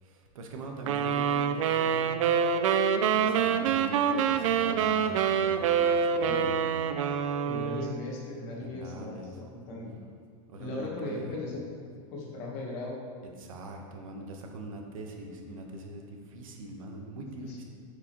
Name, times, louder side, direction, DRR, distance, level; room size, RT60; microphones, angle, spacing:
voice 1, 0.0-2.0 3.1-6.8 8.6-9.3 10.5-11.3 13.4-17.6, right 2 dB, 90° right, 2 dB, 1.0 m, -42 dB
sound 1, 0.9-8.0, right 7 dB, 75° right, 0.4 m, -26 dB
voice 2, 7.4-9.9 10.6-11.6 12.1-13.0 17.1-17.6, left 2 dB, 35° left, -3 dB, 1.2 m, -38 dB
8.0 x 4.9 x 3.0 m, 2.2 s
supercardioid pair, 175°, 17 cm